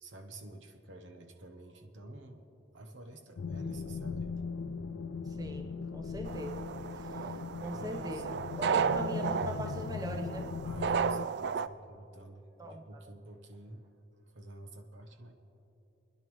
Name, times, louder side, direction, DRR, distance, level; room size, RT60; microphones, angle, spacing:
voice 1, 0.0-2.5 2.7-4.4 7.7-8.3 10.6-13.9 14.3-15.3, right 1 dB, 80° right, 5 dB, 1.1 m, -50 dB
sound 1, 3.4-11.3, left 5 dB, 75° left, 0.4 m, -39 dB
voice 2, 5.2-5.7 5.9-6.6 7.0-10.5 12.6-12.8, equal, 20° right, 2 dB, 1.0 m, -42 dB
sound 2, 6.3-11.7, right 6 dB, 60° right, 0.3 m, -34 dB
29.5 x 10.5 x 3.2 m, 2.9 s
head